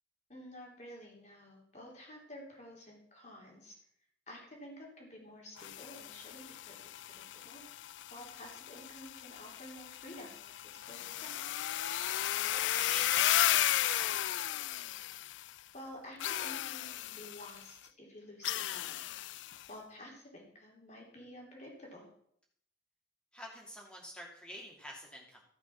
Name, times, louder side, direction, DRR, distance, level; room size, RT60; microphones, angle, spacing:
voice 1, 0.3-3.7 4.3-7.6 8.1-11.6 15.7-18.9 19.7-22.1, left 1 dB, 35° left, -1 dB, 3.4 m, -51 dB
sound 1, 5.6-15.6 16.2-17.6 18.4-19.7, left 13 dB, 75° left, 0.3 m, -35 dB
voice 2, 12.4-14.2 23.3-25.4, equal, 5° left, -2 dB, 2.7 m, -48 dB
14.5 x 6.0 x 6.0 m, 0.68 s
head